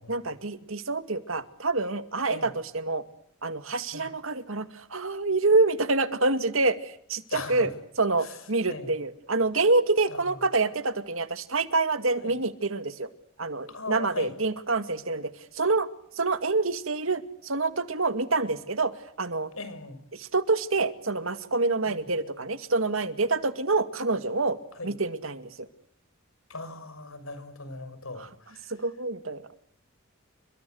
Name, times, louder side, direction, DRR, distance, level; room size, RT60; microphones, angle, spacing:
voice 1, 0.1-3.0 3.4-7.7 8.0-13.1 13.4-15.9 16.1-18.9 19.2-19.5 20.1-24.6 24.8-25.7 28.2-28.3 28.7-29.4, right 3 dB, 75° right, 10 dB, 2.3 m, -27 dB
voice 2, 7.3-7.7 8.2-8.4 8.7-8.9 10.1-10.3 12.2-12.3 13.7-14.3 19.5-20.0 21.9-22.0 24.7-24.9 26.5-28.7, left 3 dB, 80° left, 12 dB, 6.5 m, -39 dB
29.5 x 24.0 x 8.0 m, 0.67 s
head